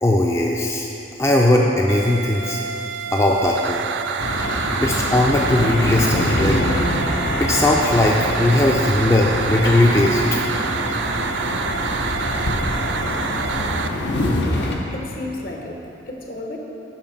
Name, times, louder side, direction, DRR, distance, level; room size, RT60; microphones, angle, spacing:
voice 1, 0.0-0.8 1.2-2.6 3.1-3.8 4.8-6.7 7.4-10.2, left 1 dB, 15° left, -2 dB, 0.4 m, -18 dB
sound 1, 1.9-13.9, right 6 dB, 75° right, 0.4 m, -27 dB
sound 2, 4.2-14.8, left 1 dB, 80° left, 0.9 m, -24 dB
voice 2, 14.9-16.6, left 2 dB, 55° left, 0 dB, 1.0 m, -32 dB
7.2 x 5.5 x 5.7 m, 3.0 s
head